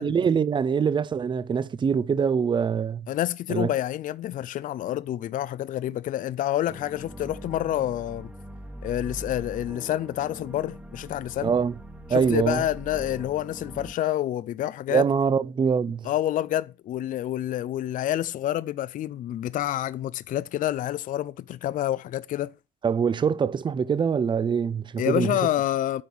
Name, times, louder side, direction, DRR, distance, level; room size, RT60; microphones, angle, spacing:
voice 1, 0.0-3.1 3.5-3.7 11.4-11.8 12.1-12.6 14.9-16.1 22.8-25.4, right 6 dB, 30° right, 0.5 m, -24 dB
voice 2, 3.1-8.3 8.8-11.5 12.1-15.0 16.0-22.5 25.0-26.0, left 12 dB, 50° left, 0.5 m, -28 dB
sound 1, 6.7-13.9, right 1 dB, 10° right, 1.2 m, -42 dB
8.7 x 5.3 x 6.1 m
cardioid pair, 110°, 17 cm